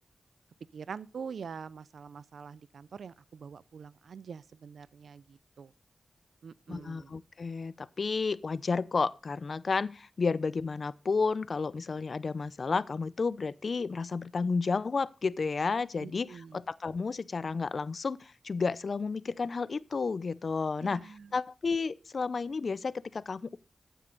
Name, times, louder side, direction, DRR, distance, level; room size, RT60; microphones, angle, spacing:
voice 1, 0.7-5.7 6.4-7.2 16.0-16.6 20.8-21.3, right 6 dB, 85° right, 0.4 m, -45 dB
voice 2, 6.7-23.6, left 4 dB, 60° left, 0.5 m, -32 dB
12.0 x 9.1 x 3.9 m
cardioid pair, 55°, 0 cm